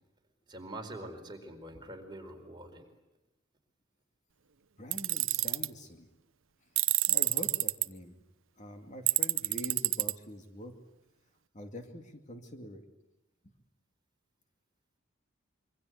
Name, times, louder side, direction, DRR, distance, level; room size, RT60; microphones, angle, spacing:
voice 1, 0.5-2.8, right 1 dB, 20° right, 3 dB, 4.4 m, -44 dB
voice 2, 4.8-6.1 7.1-8.2 8.6-10.7 11.5-12.8, equal, 35° left, 4 dB, 2.4 m, -45 dB
Tools, 4.9-5.7 6.8-7.9 9.1-10.1, right 17 dB, 70° right, 0.8 m, -27 dB
26.5 x 24.5 x 8.1 m, 0.96 s
head